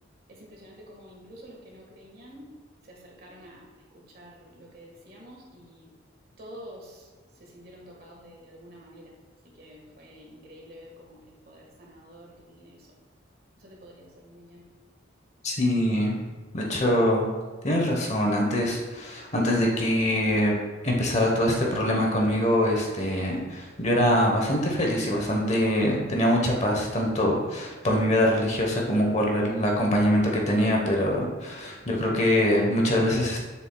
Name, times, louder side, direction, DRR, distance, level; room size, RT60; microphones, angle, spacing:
voice 1, 0.3-2.5 2.9-3.6 3.9-5.9 6.4-7.1 7.4-9.1 9.4-12.9 13.6-14.7, equal, 50° right, -2 dB, 1.5 m, -48 dB
voice 2, 15.4-16.2 16.5-17.3 17.6-20.6 20.8-33.4, equal, 35° left, 0 dB, 1.0 m, -24 dB
7.0 x 6.9 x 2.2 m, 1.4 s
head